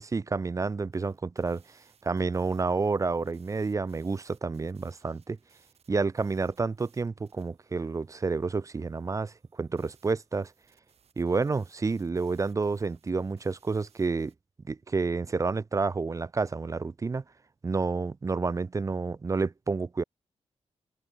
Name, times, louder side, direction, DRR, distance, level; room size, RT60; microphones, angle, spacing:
voice 1, 0.0-1.6 2.0-5.4 5.9-10.5 11.2-14.3 14.6-17.2 17.6-20.0, right 4 dB, 30° right, 0.6 m, -29 dB
sound 1, 0.9-14.4, right 7 dB, 65° right, 7.1 m, -67 dB
wide cardioid pair, 105°, 11 cm